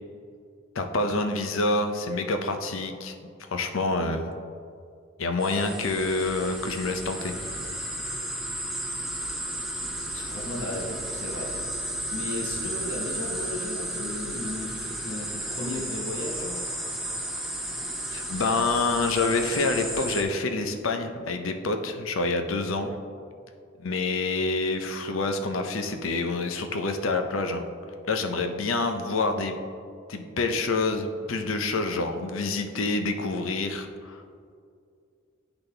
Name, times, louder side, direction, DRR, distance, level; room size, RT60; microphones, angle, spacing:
voice 1, 0.7-3.1 3.5-4.3 5.2-7.4 18.1-22.9 23.8-27.6 28.1-29.5 30.1-34.2, left 3 dB, 80° left, 6 dB, 0.6 m, -27 dB
sound 1, 5.4-20.2, right 1 dB, ahead, 0.7 m, -33 dB
voice 2, 10.1-11.5 12.1-16.6, left 2 dB, 65° left, -4 dB, 1.2 m, -35 dB
10.5 x 4.0 x 3.3 m, 2.3 s
head